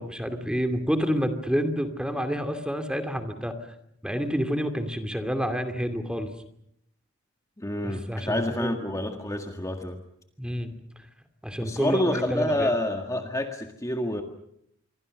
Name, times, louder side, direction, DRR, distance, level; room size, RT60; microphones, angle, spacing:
voice 1, 0.0-3.5 4.0-6.3 7.8-8.7 10.4-10.7 11.4-12.7, equal, 5° right, 7 dB, 2.5 m, -28 dB
voice 2, 7.6-10.0 11.6-14.2, left 1 dB, 15° left, 4 dB, 1.8 m, -28 dB
27.0 x 24.5 x 6.5 m, 0.72 s
head